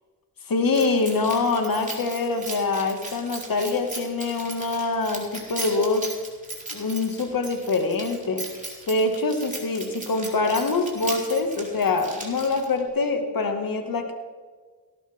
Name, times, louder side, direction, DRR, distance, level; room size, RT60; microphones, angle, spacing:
voice 1, 0.5-6.1 6.7-8.4 8.9-14.1, left 3 dB, 50° left, 5 dB, 2.0 m, -24 dB
Keys jangling, 0.7-12.9, right 2 dB, 20° right, 4.5 m, -38 dB
17.5 x 13.0 x 3.6 m, 1.5 s
cardioid pair, 60°, 43 cm